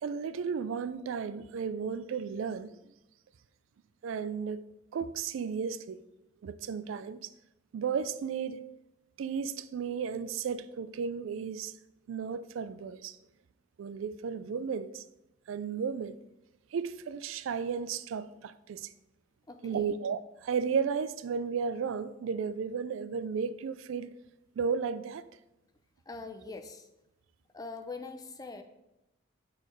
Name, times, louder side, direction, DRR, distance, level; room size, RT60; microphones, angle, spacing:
voice 1, 0.0-2.8 4.0-4.6 4.9-6.0 6.4-7.3 7.7-8.6 9.2-11.7 12.1-13.2 13.8-15.0 15.5-16.2 16.7-18.9 19.6-24.1 24.6-25.3, right 6 dB, 70° right, 0.3 m, -34 dB
voice 2, 19.5-19.9 26.1-26.9 27.5-28.6, left 3 dB, 20° left, 0.4 m, -43 dB
6.5 x 4.1 x 5.0 m
head